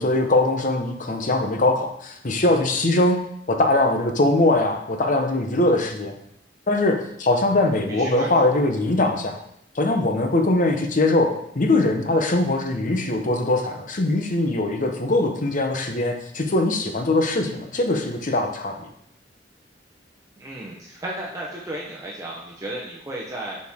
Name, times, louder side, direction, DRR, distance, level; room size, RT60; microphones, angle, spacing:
voice 1, 0.0-6.1 6.7-9.4 9.7-18.7, left 2 dB, 45° left, 4 dB, 0.9 m, -21 dB
voice 2, 7.9-8.5 9.0-9.3 20.4-23.6, right 1 dB, 20° right, -4 dB, 0.8 m, -34 dB
8.9 x 4.3 x 3.6 m, 0.74 s
head